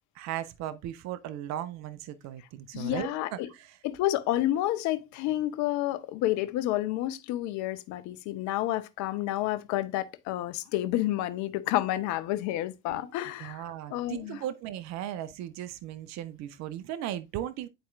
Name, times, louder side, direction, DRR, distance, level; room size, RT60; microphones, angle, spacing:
voice 1, 0.1-3.8 12.9-13.1 13.4-17.7, right 11 dB, 65° right, 0.6 m, -37 dB
voice 2, 2.7-3.5 3.8-13.6 13.9-14.4, left 14 dB, 70° left, 0.7 m, -30 dB
10.5 x 4.2 x 2.4 m
hypercardioid pair, 60°, 30 cm